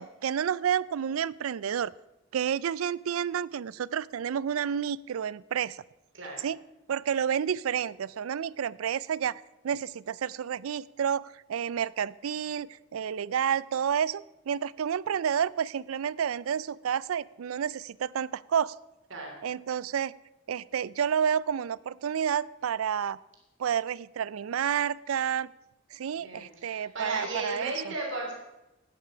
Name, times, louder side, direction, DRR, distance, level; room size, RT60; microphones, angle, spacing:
voice 1, 0.0-1.9 2.3-5.8 6.4-6.6 6.9-18.8 19.4-20.1 20.5-23.2 23.6-25.5 25.9-27.9, right 8 dB, 90° right, 21 dB, 0.4 m, -30 dB
voice 2, 26.2-28.3, right 2 dB, 65° right, -1 dB, 3.2 m, -35 dB
13.5 x 9.8 x 5.0 m, 0.95 s
head